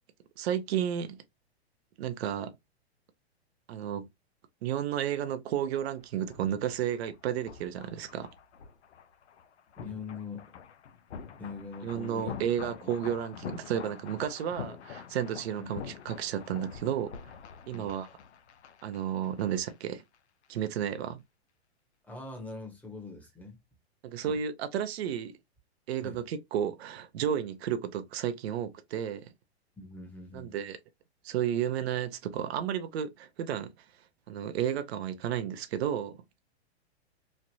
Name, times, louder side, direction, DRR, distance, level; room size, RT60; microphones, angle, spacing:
voice 1, 0.4-1.2 2.0-2.5 3.7-4.1 4.6-8.3 11.8-17.2 17.7-18.1 18.8-20.0 20.5-21.2 24.0-25.3 25.9-29.3 30.3-30.8 31.2-33.7 34.3-36.1, right 9 dB, 70° right, 0.6 m, -32 dB
sound 1, 5.9-19.7 20.0-20.2, left 8 dB, 90° left, 0.7 m, -46 dB
voice 2, 9.7-10.5 11.4-12.9 15.6-15.7 17.7-17.9 22.0-23.6 24.2-24.4 26.0-26.2 29.8-30.6, left 4 dB, 5° left, 0.9 m, -43 dB
3.1 x 2.4 x 2.6 m
hypercardioid pair, 130°, 33 cm